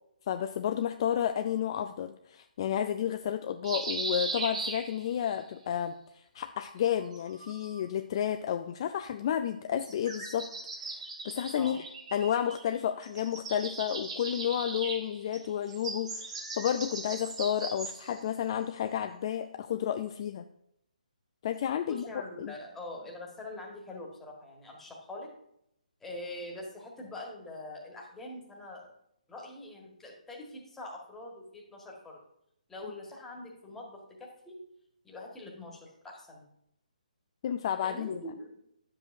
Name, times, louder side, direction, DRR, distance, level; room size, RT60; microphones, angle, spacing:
voice 1, 0.3-10.5 10.8-10.9 11.2-11.8 12.1-20.5 21.4-22.1 22.4-22.5 37.4-38.2, left 9 dB, 35° left, 8 dB, 0.4 m, -31 dB
sound 1, 3.6-5.4 6.8-7.8 9.8-12.8 13.0-18.2, right 3 dB, 50° right, 2.5 m, -39 dB
voice 2, 21.9-25.3 26.0-28.9 29.3-32.2 32.7-34.6 35.0-36.5 37.8-38.6, left 1 dB, 5° left, -2 dB, 1.6 m, -44 dB
10.5 x 7.5 x 2.6 m, 0.76 s
figure-of-eight pair, 140°, 4 cm